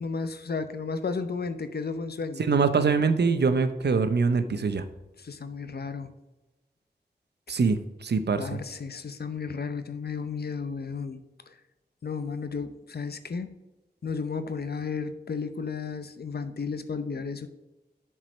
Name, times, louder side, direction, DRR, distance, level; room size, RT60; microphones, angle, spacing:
voice 1, 0.0-2.4 5.2-6.1 8.4-11.2 12.0-13.5 14.0-17.5, left 5 dB, 70° left, 10 dB, 0.8 m, -33 dB
voice 2, 2.4-4.8 7.5-8.4, right 4 dB, 75° right, 10 dB, 0.7 m, -24 dB
7.4 x 4.7 x 6.1 m, 1.0 s
wide cardioid pair, 55°, 17 cm